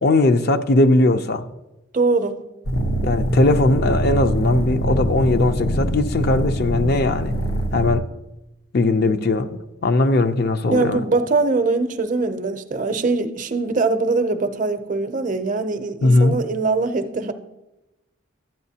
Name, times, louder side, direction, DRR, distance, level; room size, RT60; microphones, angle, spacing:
voice 1, 0.0-1.4 3.0-7.3 7.7-8.0 8.7-11.0 16.0-16.4, left 2 dB, 50° left, 8 dB, 0.5 m, -19 dB
voice 2, 1.9-2.4 10.7-17.3, right 3 dB, 40° right, 9 dB, 0.5 m, -22 dB
sound 1, 2.6-7.9, right 1 dB, 90° left, 1.0 m, -23 dB
12.0 x 8.7 x 2.8 m, 0.98 s
head